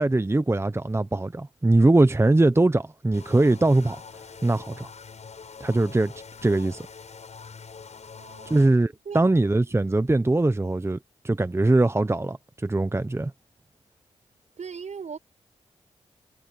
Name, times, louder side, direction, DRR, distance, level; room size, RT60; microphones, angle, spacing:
voice 1, 0.0-4.0 4.4-4.9 5.6-6.1 6.4-6.9 8.5-11.0 11.2-13.3, right 2 dB, 20° right, 1.0 m, -21 dB
sound 1, 3.1-8.6, left 5 dB, 60° left, 7.6 m, -44 dB
voice 2, 8.2-9.3 14.6-15.2, right 6 dB, 65° right, 5.7 m, -39 dB
supercardioid pair, 45°, 13 cm